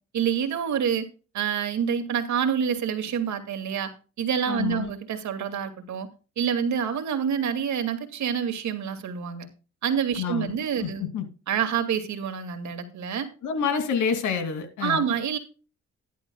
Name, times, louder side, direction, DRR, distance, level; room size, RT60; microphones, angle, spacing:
voice 1, 0.1-1.1 1.3-3.9 4.2-6.1 6.4-9.5 9.8-11.1 11.5-13.3 14.8-15.4, right 8 dB, 70° right, 2.3 m, -27 dB
voice 2, 4.5-4.9 10.1-11.3 13.4-15.1, left 6 dB, 80° left, 2.7 m, -28 dB
13.5 x 11.5 x 2.3 m
cardioid pair, 90°, 30 cm